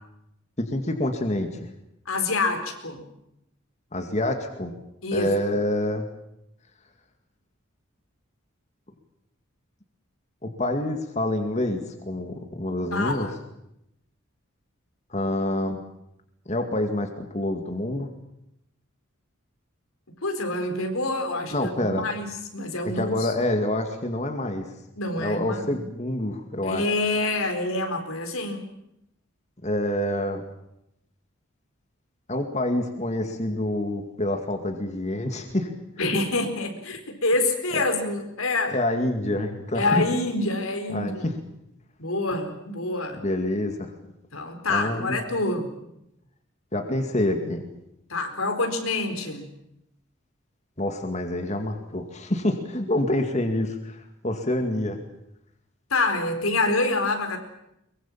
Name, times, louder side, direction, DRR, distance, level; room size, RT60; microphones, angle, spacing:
voice 1, 0.6-1.7 3.9-4.7 5.1-6.1 10.4-13.3 15.1-15.8 16.5-18.1 21.5-22.1 22.9-24.7 25.1-26.8 29.6-30.4 32.3-35.7 37.7-37.8 38.7-40.0 40.9-41.3 43.1-43.9 44.7-45.2 46.7-47.6 50.8-55.0, left 1 dB, 35° left, 5 dB, 2.3 m, -27 dB
voice 2, 2.1-3.1 5.0-5.3 12.9-13.3 20.2-22.3 22.5-23.3 25.0-25.8 26.6-28.7 36.0-38.8 39.7-41.2 42.0-43.2 44.3-45.7 48.1-49.5 55.9-57.4, left 2 dB, 85° left, 6 dB, 4.4 m, -26 dB
23.0 x 23.0 x 7.5 m, 0.82 s
head